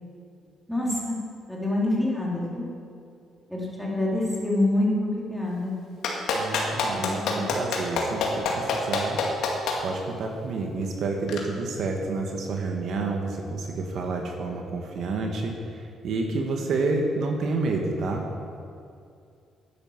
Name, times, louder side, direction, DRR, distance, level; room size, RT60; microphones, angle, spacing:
voice 1, 0.7-1.2 1.5-2.7 3.5-5.8 6.9-7.5, left 1 dB, ahead, -5 dB, 3.6 m, -26 dB
Clapping, 6.0-9.8 11.3-11.4, left 5 dB, 85° left, 2.0 m, -25 dB
voice 2, 6.3-9.2 9.8-18.3, right 3 dB, 70° right, 2 dB, 1.5 m, -29 dB
10.0 x 9.9 x 7.3 m, 2.4 s
cardioid pair, 90°, 0 cm